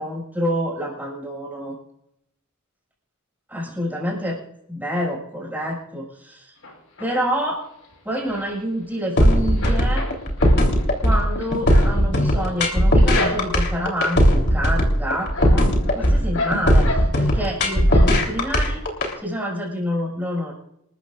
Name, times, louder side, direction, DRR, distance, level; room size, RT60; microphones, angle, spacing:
voice 1, 0.0-1.7 3.5-4.4 4.7-6.6 7.0-7.7 8.0-10.1 11.0-18.8 19.2-20.5, equal, 10° right, -2 dB, 6.1 m, -27 dB
sound 1, 6.6-7.4 7.8-9.2 9.4-13.8 14.3-14.7 15.1-17.5 17.9-18.5 18.9-19.0 19.3-19.4, left 2 dB, 70° left, 6.6 m, -32 dB
sound 2, 9.2-19.1, equal, 50° left, 3.5 m, -17 dB
27.0 x 14.0 x 2.5 m, 0.79 s
head